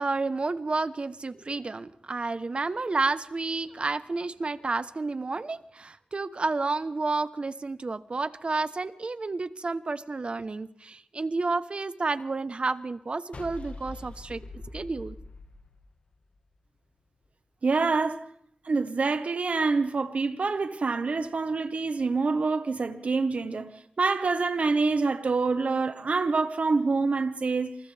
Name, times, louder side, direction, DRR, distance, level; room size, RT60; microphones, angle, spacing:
voice 1, 0.0-15.2, right 3 dB, 50° right, 1.1 m, -30 dB
sound 1, 13.3-16.6, left 3 dB, 75° left, 2.3 m, -43 dB
voice 2, 17.6-18.3 18.6-27.8, right 4 dB, 75° right, 1.4 m, -26 dB
28.5 x 28.0 x 3.5 m
wide cardioid pair, 80°, 2 cm